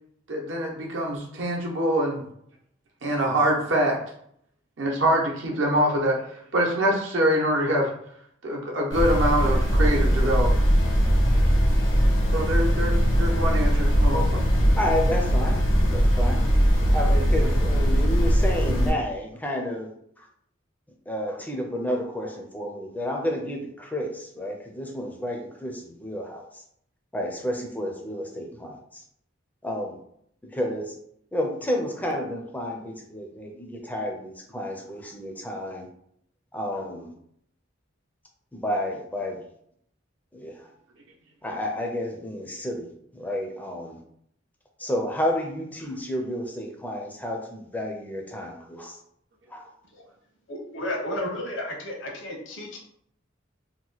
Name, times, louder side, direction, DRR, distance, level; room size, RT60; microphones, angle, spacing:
voice 1, 0.3-2.2 3.0-4.0 4.8-7.9 8.4-10.6 12.3-14.4, right 1 dB, 70° right, -1 dB, 0.8 m, -24 dB
sound 1, 8.9-18.9, equal, 90° left, 1.4 m, -20 dB
voice 2, 14.7-15.6 15.9-16.5 16.9-19.9 20.2-20.3 21.1-26.6 27.1-29.0 29.6-30.0 30.4-30.9 31.3-35.9 36.5-37.1 38.5-39.4 40.3-40.7 41.4-44.0 44.8-49.0 49.5-49.7, equal, 10° left, 1 dB, 0.4 m, -31 dB
voice 3, 50.5-52.8, left 1 dB, 75° left, 0 dB, 0.9 m, -33 dB
2.9 x 2.2 x 3.9 m, 0.69 s
head